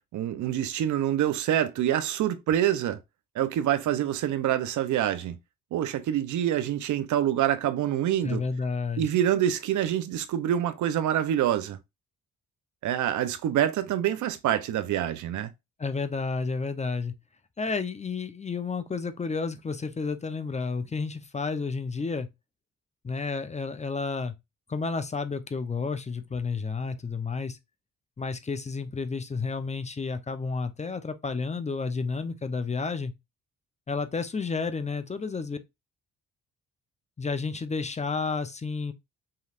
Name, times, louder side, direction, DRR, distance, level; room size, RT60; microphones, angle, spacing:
voice 1, 0.1-3.0 3.3-5.4 5.7-8.4 9.0-11.8 12.8-15.5, right 11 dB, 75° right, 0.7 m, -26 dB
voice 2, 8.2-9.1 15.8-17.1 17.6-22.3 23.0-24.3 24.7-27.6 28.2-33.1 33.9-35.6 37.2-38.9, left 4 dB, 25° left, 0.7 m, -31 dB
5.7 x 3.2 x 2.5 m
cardioid pair, 90°, 30 cm